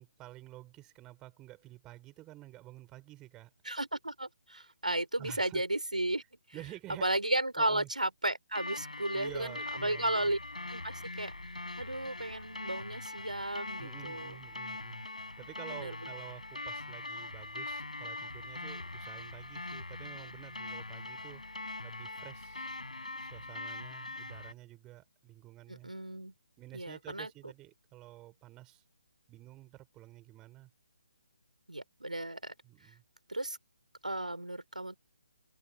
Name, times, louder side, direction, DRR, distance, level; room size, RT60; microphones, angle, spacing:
voice 1, 0.0-3.5 4.5-4.7 5.2-5.6 6.5-7.1 7.6-7.9 9.1-10.3 13.8-15.1 15.4-22.7 23.2-25.9 26.6-28.8 29.3-30.7 32.6-33.0, right 17 dB, 15° right, 5.9 m, -50 dB
voice 2, 3.6-6.2 7.0-10.4 10.7-11.3 11.8-14.4 15.7-16.0 25.7-26.3 26.7-27.3 31.7-32.5 33.3-33.6 34.0-35.0, right 1 dB, 80° right, 4.0 m, -34 dB
sound 1, 8.6-24.5, left 2 dB, 70° left, 8.0 m, -42 dB
open air
figure-of-eight pair, 140°, 4 cm